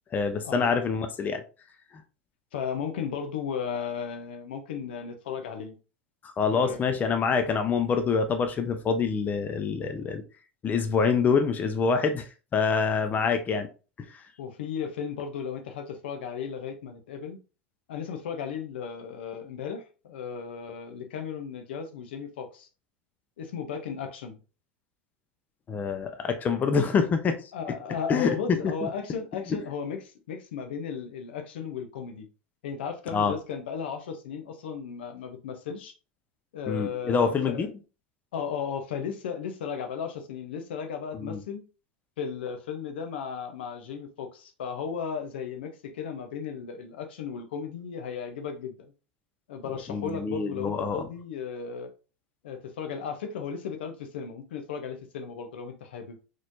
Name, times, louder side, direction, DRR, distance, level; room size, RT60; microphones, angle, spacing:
voice 1, 0.1-1.4 6.2-10.2 10.6-12.3 12.5-13.7 25.7-27.4 28.1-28.9 29.5-29.6 33.1-33.3 36.7-37.7 41.2-41.4 49.9-51.1, left 5 dB, 30° left, 0.6 m, -26 dB
voice 2, 2.5-5.8 6.5-6.8 14.4-17.4 17.9-22.7 23.4-24.4 27.5-32.3 32.6-35.9 36.5-37.7 38.3-41.6 42.2-48.9 49.5-51.9 52.4-56.2, left 7 dB, 75° left, 0.7 m, -35 dB
4.1 x 3.2 x 2.6 m
hypercardioid pair, 90°, 6 cm